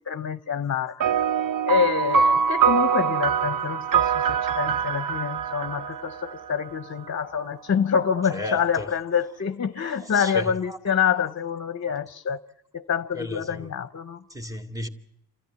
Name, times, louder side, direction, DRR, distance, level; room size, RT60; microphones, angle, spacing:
voice 1, 0.1-1.2 1.6-12.4 12.7-14.2, left 7 dB, 45° left, 0.8 m, -26 dB
sound 1, 1.0-6.8, right 7 dB, 60° right, 0.8 m, -24 dB
voice 2, 8.2-8.9 10.0-10.8 13.1-13.7 14.3-14.9, left 1 dB, 10° right, 2.2 m, -34 dB
28.5 x 14.0 x 9.6 m
cardioid pair, 90°, 39 cm